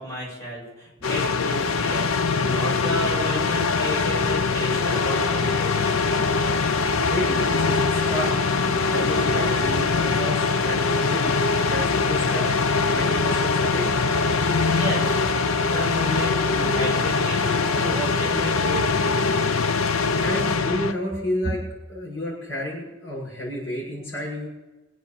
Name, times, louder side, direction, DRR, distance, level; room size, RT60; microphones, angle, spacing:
voice 1, 0.0-6.0 14.7-15.2 15.6-19.5, equal, 15° left, -4 dB, 7.7 m, -32 dB
sound 1, 1.0-20.9, left 4 dB, 90° left, 0.8 m, -22 dB
sound 2, 2.8-20.4, right 2 dB, 5° right, 2.9 m, -39 dB
voice 2, 7.1-8.3 8.9-12.5 12.7-13.9 20.2-21.6 21.9-24.5, left 1 dB, 65° left, -8 dB, 6.1 m, -30 dB
23.5 x 8.0 x 7.1 m, 1.1 s
head